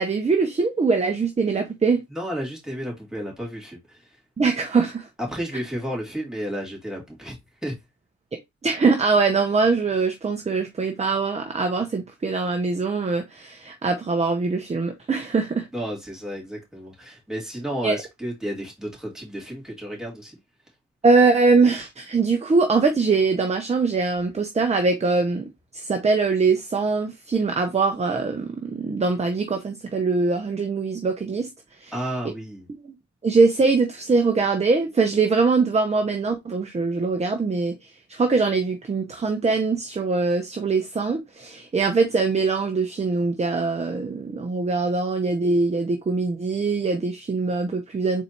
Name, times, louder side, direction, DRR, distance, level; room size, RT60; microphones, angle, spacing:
voice 1, 0.0-2.0 4.4-5.1 8.6-15.7 17.8-18.0 21.0-31.5 31.8-31.9 32.7-33.0 33.2-48.2, right 4 dB, 20° right, 0.8 m, -22 dB
voice 2, 2.1-4.1 5.3-7.4 7.6-7.8 15.7-20.4 31.9-32.7, equal, ahead, 2.6 m, -32 dB
4.1 x 2.7 x 4.3 m
cardioid pair, 90°, 30 cm